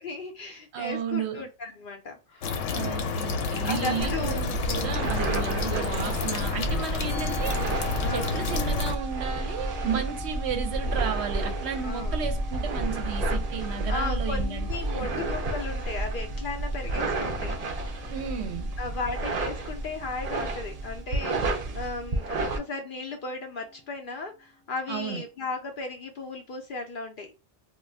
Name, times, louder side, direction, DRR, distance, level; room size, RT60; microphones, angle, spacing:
voice 1, 0.0-3.1 3.6-4.4 8.0-8.5 11.8-12.2 13.9-17.5 18.8-27.3, left 3 dB, 60° left, 0.6 m, -36 dB
voice 2, 0.7-1.5 2.7-7.6 8.1-15.1 18.1-18.7 24.9-25.2, right 7 dB, 70° right, 0.8 m, -33 dB
sound 1, 2.4-9.0, left 5 dB, 80° left, 0.9 m, -30 dB
sound 2, 4.0-22.6, right 2 dB, 50° right, 0.4 m, -31 dB
Musical instrument, 7.1-25.6, right 3 dB, 20° right, 0.9 m, -45 dB
2.4 x 2.2 x 3.2 m
omnidirectional pair, 1.2 m